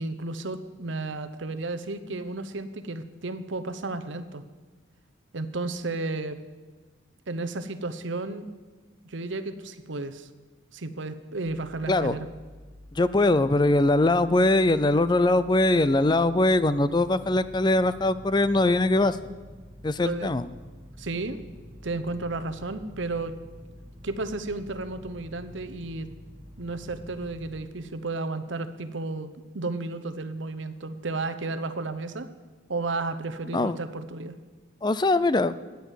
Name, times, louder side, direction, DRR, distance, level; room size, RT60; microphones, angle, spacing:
voice 1, 0.0-4.4 5.3-6.4 7.3-8.5 9.0-10.3 10.7-12.3 20.0-20.3 21.0-21.4 21.8-23.3 24.0-26.1 26.6-32.3 32.7-34.3, right 3 dB, 65° right, 12 dB, 0.9 m, -33 dB
sound 1, 11.5-27.6, equal, 25° right, 1.5 m, -47 dB
voice 2, 12.9-19.2 19.8-20.5 33.5-33.7 34.8-35.5, left 2 dB, 20° left, 15 dB, 0.4 m, -22 dB
13.5 x 9.3 x 8.2 m, 1.3 s
head